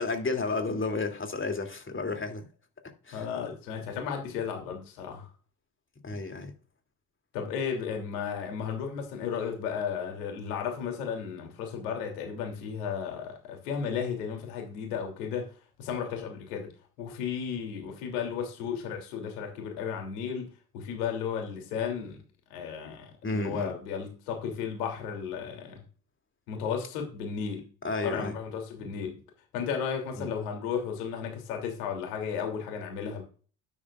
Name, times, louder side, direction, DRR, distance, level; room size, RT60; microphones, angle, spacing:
voice 1, 0.0-2.4 2.8-3.2 6.0-6.5 23.2-23.7 27.8-28.3 30.2-30.3, left 3 dB, 25° left, 2.9 m, -32 dB
voice 2, 3.1-5.3 7.3-15.5 15.8-16.7 17.0-20.5 20.7-22.2 22.5-25.8 26.5-27.7 28.0-29.2 29.5-33.2, left 7 dB, 80° left, 3.2 m, -34 dB
12.5 x 10.0 x 2.5 m
hypercardioid pair, 55°, 45 cm